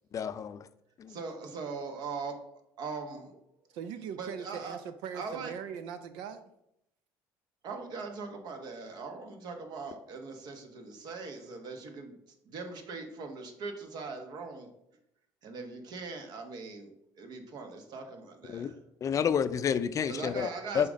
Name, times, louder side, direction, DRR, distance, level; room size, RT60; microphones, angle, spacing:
voice 1, 0.1-0.7 1.0-1.2 18.5-18.7 19.0-20.5 20.7-20.9, left 7 dB, 45° left, 0.4 m, -29 dB
voice 2, 1.1-2.5 2.8-3.4 4.1-4.8 5.1-5.5 7.6-12.2 12.4-14.7 15.4-16.9 17.2-18.7 20.1-20.9, right 4 dB, 60° right, 1.2 m, -40 dB
voice 3, 3.7-6.5, right 8 dB, 80° right, 0.5 m, -40 dB
5.8 x 3.8 x 5.1 m
supercardioid pair, 80°, 8 cm